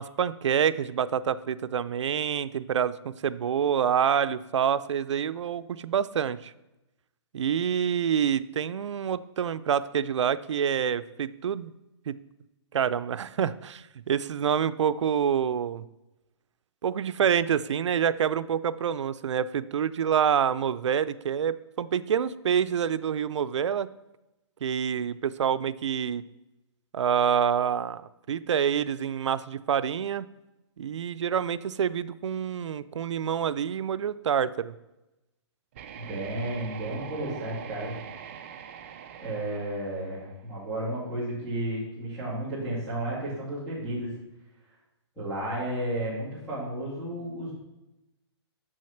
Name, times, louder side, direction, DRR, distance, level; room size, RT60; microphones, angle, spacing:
voice 1, 0.0-6.5 7.3-11.7 12.1-12.2 12.7-15.8 16.8-23.9 24.6-26.2 26.9-28.0 28.3-30.3 30.8-34.7, right 8 dB, 85° right, 15 dB, 0.5 m, -27 dB
sound 1, 35.7-40.7, right 8 dB, 30° right, 0.5 m, -43 dB
voice 2, 36.0-38.1 39.2-44.1 45.2-47.5, right 1 dB, 5° left, -14 dB, 2.5 m, -33 dB
7.1 x 6.3 x 5.8 m, 0.97 s
hypercardioid pair, 170°, 15 cm